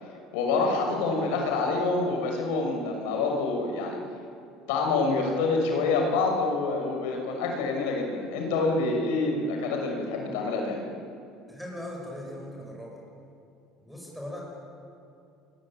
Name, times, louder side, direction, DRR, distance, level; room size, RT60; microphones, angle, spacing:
voice 1, 0.3-4.0 4.7-10.8, left 3 dB, 90° left, 2 dB, 6.4 m, -27 dB
voice 2, 11.5-13.0 13.8-14.4, left 1 dB, ahead, -2 dB, 7.3 m, -39 dB
29.0 x 23.0 x 9.1 m, 2.6 s
cardioid pair, 155°, 0 cm